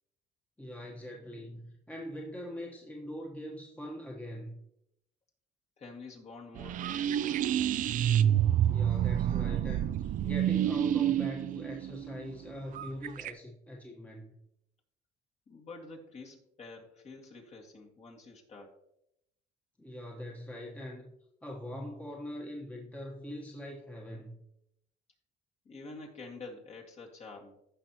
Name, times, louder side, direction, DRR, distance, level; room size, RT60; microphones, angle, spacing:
voice 1, 0.6-4.6 8.7-14.3 19.8-21.1 21.4-24.4, equal, 10° left, -1 dB, 1.2 m, -42 dB
voice 2, 5.8-7.8 15.5-18.8 25.6-27.6, left 3 dB, 40° left, -1 dB, 2.2 m, -48 dB
sound 1, 6.6-13.3, right 10 dB, 50° right, 0.4 m, -28 dB
15.0 x 5.5 x 3.0 m, 0.77 s
cardioid pair, 110°, 17 cm